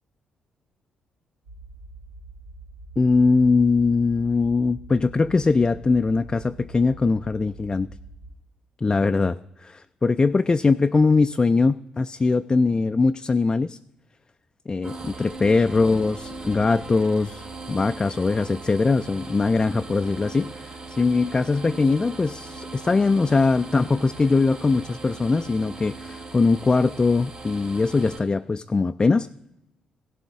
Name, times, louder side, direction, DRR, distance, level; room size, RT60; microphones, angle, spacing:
sound 1, 1.4-8.3, right 2 dB, 85° right, 0.8 m, -44 dB
voice 1, 3.0-7.9 8.8-13.8 14.7-29.3, left 4 dB, 30° left, 10 dB, 0.3 m, -21 dB
sound 2, 14.8-28.2, right 3 dB, 60° right, 3.5 m, -39 dB
16.0 x 7.7 x 3.6 m, 0.87 s
hypercardioid pair, 45°, 3 cm